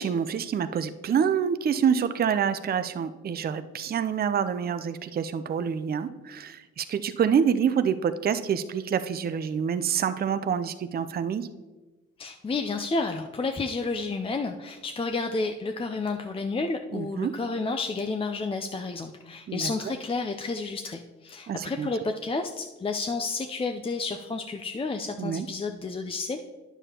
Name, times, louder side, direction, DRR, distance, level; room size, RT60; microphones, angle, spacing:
voice 1, 0.0-11.5 16.9-17.3 19.5-19.7 21.5-21.9 25.2-25.5, right 7 dB, 30° right, 11 dB, 0.5 m, -27 dB
voice 2, 12.2-26.4, left 3 dB, 20° left, 6 dB, 0.5 m, -31 dB
9.8 x 6.9 x 2.9 m, 1.2 s
hypercardioid pair, 50°, 31 cm